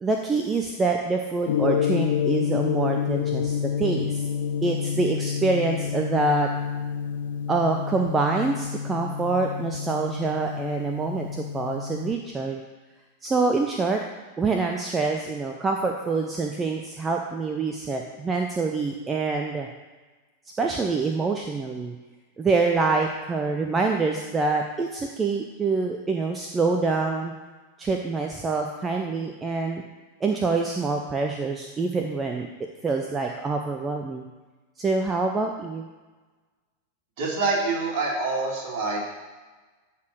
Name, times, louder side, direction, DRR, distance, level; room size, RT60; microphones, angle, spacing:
voice 1, 0.0-4.2 4.6-6.5 7.5-12.6 13.2-14.0 14.4-19.7 20.6-21.9 22.4-27.3 27.8-29.8 30.2-32.5 32.8-34.3 34.8-35.9, right 3 dB, 15° right, 3 dB, 0.8 m, -26 dB
Gong, 1.5-12.1, left 7 dB, 55° left, 0.7 m, -28 dB
voice 2, 37.2-39.2, right 3 dB, 45° right, -3 dB, 3.1 m, -26 dB
12.5 x 4.3 x 6.3 m, 1.3 s
figure-of-eight pair, 90°, 0 cm